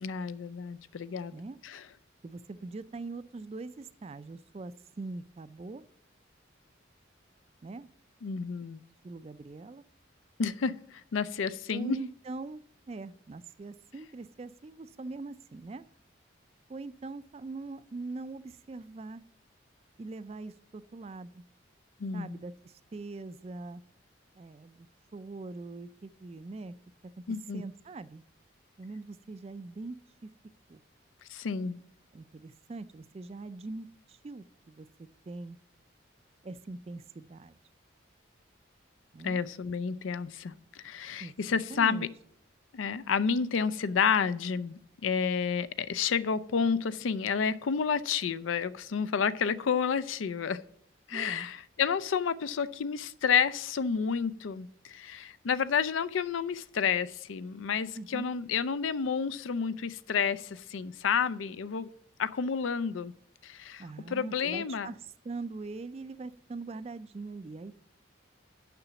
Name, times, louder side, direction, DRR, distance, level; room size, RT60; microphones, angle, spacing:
voice 1, 0.0-1.4 1.6-1.9 8.2-8.8 10.4-12.0 22.0-22.4 27.3-27.6 31.3-31.8 39.2-42.1 42.7-50.6 51.1-61.9 62.2-63.1 63.4-64.9, left 6 dB, 85° left, 0.4 m, -30 dB
voice 2, 2.2-5.8 7.6-7.9 9.0-9.8 11.7-12.6 12.9-15.8 16.7-19.2 20.0-21.4 22.1-23.8 24.3-24.9 25.1-26.7 27.2-27.3 27.5-28.2 28.8-30.0 30.2-30.3 30.7-30.8 32.1-34.9 35.3-35.6 36.4-37.6 39.1-39.4 41.2-41.3 41.7-42.1 51.1-51.5 57.9-58.3 63.8-65.0 65.2-67.8, right 3 dB, 30° right, 0.3 m, -42 dB
6.9 x 5.9 x 6.8 m
head